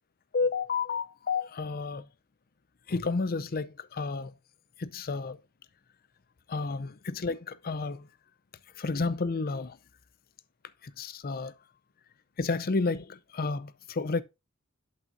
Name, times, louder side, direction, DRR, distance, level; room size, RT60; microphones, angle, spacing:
voice 1, 0.3-2.0 2.9-4.3 4.8-5.4 6.5-8.1 8.8-9.8 10.8-11.5 12.4-14.2, left 4 dB, 45° left, 0.6 m, -31 dB
11.0 x 5.6 x 2.6 m
head